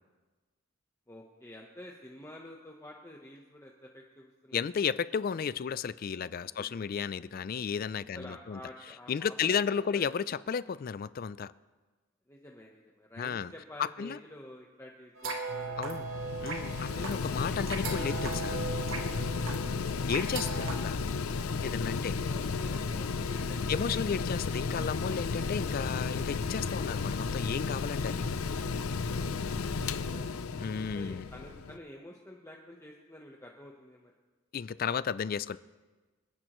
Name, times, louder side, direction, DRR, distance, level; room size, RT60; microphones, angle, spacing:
voice 1, 1.1-4.6 6.4-6.9 8.1-10.1 12.3-16.0 16.9-17.6 22.0-23.8 30.9-34.1, left 1 dB, 15° left, -1 dB, 0.9 m, -50 dB
voice 2, 4.5-8.6 9.1-11.5 13.2-13.5 13.8-14.2 15.8-16.0 16.4-18.7 20.1-21.0 21.6-22.1 23.7-28.2 30.6-31.2 34.5-35.6, left 6 dB, 45° left, 17 dB, 0.3 m, -33 dB
sound 1, 15.2-20.7, right 4 dB, 70° right, 1.9 m, -38 dB
Mechanical fan, 15.5-31.8, left 4 dB, 90° left, 0.6 m, -33 dB
27.5 x 10.5 x 3.1 m, 1.3 s
head